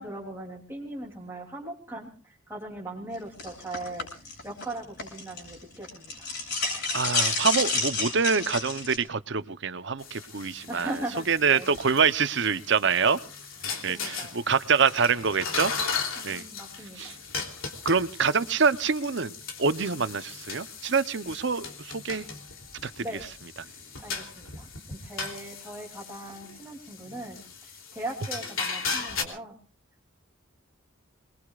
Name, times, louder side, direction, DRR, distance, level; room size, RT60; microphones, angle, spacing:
voice 1, 0.0-4.1 4.4-6.3 10.7-11.7 13.7-14.4 16.2-17.2 23.0-23.2 24.0-29.5, right 1 dB, 10° right, 3.1 m, -39 dB
sound 1, 3.4-5.5 5.8-9.0, left 3 dB, 60° left, 7.6 m, -29 dB
voice 2, 6.9-10.9 11.3-13.2 13.8-15.7 16.2-16.4 17.0-17.1 17.8-19.3 19.6-22.2 22.8-23.0, right 5 dB, 60° right, 0.8 m, -25 dB
sound 2, 10.0-29.2, left 5 dB, 85° left, 3.2 m, -37 dB
26.5 x 21.0 x 2.5 m
head